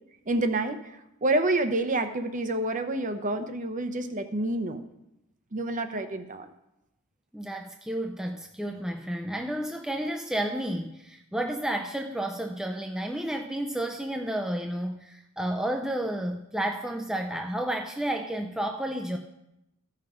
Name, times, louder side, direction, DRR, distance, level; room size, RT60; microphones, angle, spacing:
voice 1, 0.3-0.8 1.2-4.8 5.5-6.5, right 2 dB, 35° right, 8 dB, 0.7 m, -28 dB
voice 2, 7.3-19.2, right 1 dB, 5° right, 3 dB, 0.4 m, -31 dB
14.0 x 5.7 x 5.0 m, 0.87 s
head